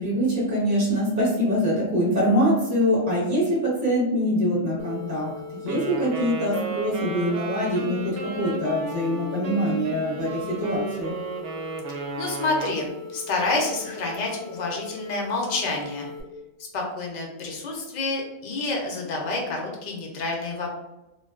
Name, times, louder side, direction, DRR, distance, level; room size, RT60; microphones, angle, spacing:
voice 1, 0.0-11.2, equal, 15° right, -5 dB, 0.7 m, -24 dB
sound 1, 4.8-16.2, left 5 dB, 90° right, 0.3 m, -40 dB
Wind instrument woodwind instrument, 5.7-12.8, right 3 dB, 70° right, 0.8 m, -34 dB
voice 2, 12.2-16.1 16.7-20.7, left 3 dB, 70° left, 0 dB, 0.4 m, -28 dB
2.5 x 2.2 x 2.3 m, 0.97 s
omnidirectional pair, 1.4 m